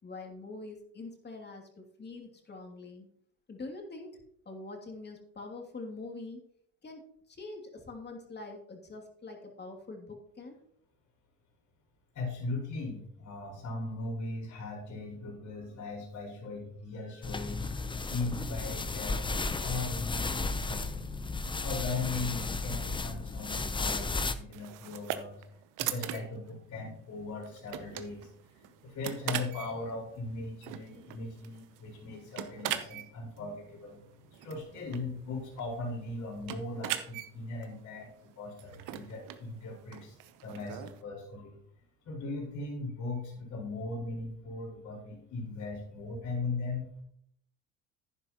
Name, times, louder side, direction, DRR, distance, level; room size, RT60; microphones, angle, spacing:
voice 1, 0.0-3.1 3.5-4.2 4.5-6.4 6.8-7.0 7.3-10.6, left 3 dB, 30° left, 2 dB, 2.7 m, -44 dB
voice 2, 12.1-21.1 21.6-25.4 25.8-28.3 28.6-34.0 34.3-40.1 40.4-41.6 42.0-46.9, left 3 dB, 55° left, -3 dB, 4.8 m, -38 dB
sound 1, 17.2-24.3, left 3 dB, 15° left, 0.7 m, -34 dB
sound 2, 24.5-41.0, right 12 dB, 65° right, 0.9 m, -42 dB
11.0 x 9.7 x 3.0 m, 0.69 s
supercardioid pair, 75°, 34 cm